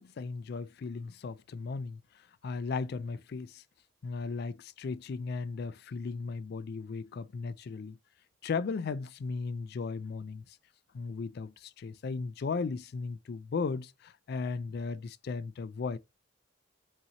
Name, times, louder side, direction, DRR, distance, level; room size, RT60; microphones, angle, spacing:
voice 1, 0.0-2.0 2.4-3.6 4.0-8.0 8.4-10.6 10.9-16.0, left 4 dB, 50° left, 0.3 m, -36 dB
5.5 x 2.7 x 2.8 m
head